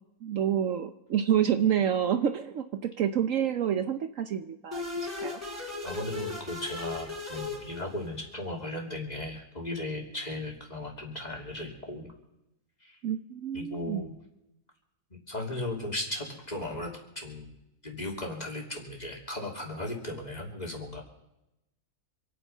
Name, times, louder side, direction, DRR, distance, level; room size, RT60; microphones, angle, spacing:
voice 1, 0.2-5.4 13.0-14.1, right 9 dB, 65° right, 9 dB, 1.0 m, -28 dB
sound 1, 4.7-8.3, left 3 dB, 10° right, 4.2 m, -37 dB
voice 2, 5.8-12.1 12.8-13.0 13.5-14.1 15.1-17.5 17.8-21.0, left 1 dB, 25° left, 0 dB, 3.0 m, -36 dB
26.5 x 9.3 x 5.5 m, 0.89 s
omnidirectional pair, 1.6 m